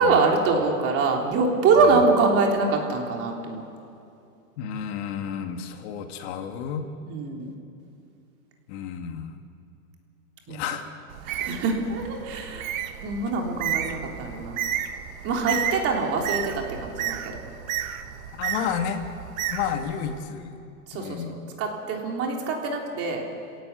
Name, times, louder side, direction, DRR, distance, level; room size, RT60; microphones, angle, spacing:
voice 1, 0.0-3.6 7.1-7.5 10.5-10.6 11.3-12.7 13.0-14.6 15.2-17.4 20.9-23.2, right 4 dB, 30° right, 1 dB, 3.5 m, -24 dB
voice 2, 4.6-6.9 8.7-9.4 10.5-10.9 15.4-15.7 18.4-19.0 19.5-20.6 20.9-21.4, left 8 dB, 45° left, 6 dB, 2.2 m, -31 dB
Bird, 11.1-20.2, right 10 dB, 60° right, 1.8 m, -32 dB
29.0 x 17.0 x 8.3 m, 2.5 s
hypercardioid pair, 135°, 45 cm